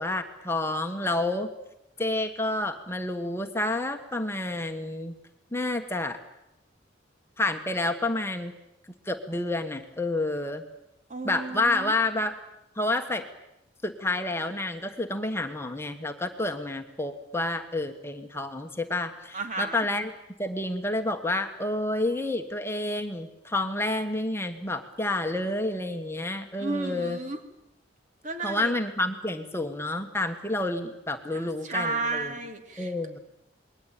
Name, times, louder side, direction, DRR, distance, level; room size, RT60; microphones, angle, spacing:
voice 1, 0.0-1.5 2.0-5.1 5.5-6.2 7.4-8.5 9.0-10.6 11.2-12.3 12.8-13.2 13.8-20.1 20.4-27.2 28.4-32.3 32.8-33.2, left 2 dB, 15° left, 5 dB, 1.4 m, -29 dB
voice 2, 11.1-11.9 19.3-19.8 26.6-27.4 28.2-28.7 31.3-32.9, right 3 dB, 40° right, 6 dB, 3.0 m, -33 dB
28.0 x 21.0 x 9.1 m, 0.86 s
head